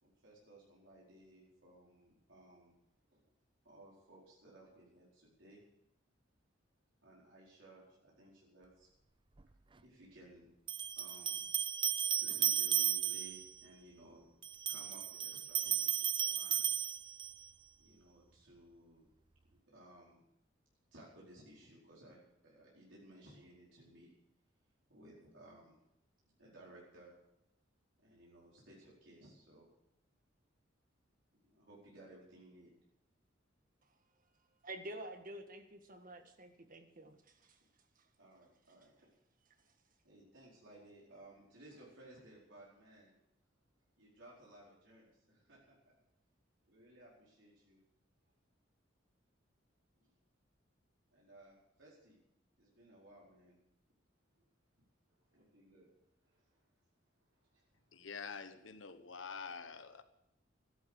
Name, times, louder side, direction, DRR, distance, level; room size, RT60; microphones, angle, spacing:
voice 1, 0.0-2.7 3.1-3.2 3.6-5.6 7.0-8.9 9.8-10.5 11.0-11.4 12.2-14.3 14.6-15.9 16.2-16.7 17.8-19.1 19.7-20.3 20.9-24.1 24.9-25.8 26.4-27.1 28.0-29.7 31.4-32.7 38.2-39.1 40.0-43.2 44.0-46.0 46.7-47.8 49.9-50.2 51.1-52.2 52.6-53.6 55.3-55.9 56.2-56.6 57.3-57.8 58.6-58.7, right 1 dB, 75° right, -5 dB, 4.7 m, -59 dB
sound 1, 9.4-9.5 10.7-13.5 14.4-17.5, right 10 dB, 25° right, 0.5 m, -34 dB
voice 2, 34.6-37.6 38.0-38.1 39.6-39.7, right 1 dB, 45° right, 6 dB, 1.8 m, -49 dB
voice 3, 57.9-60.0, left 5 dB, 75° left, 10 dB, 1.2 m, -47 dB
14.5 x 12.5 x 6.4 m, 0.82 s
head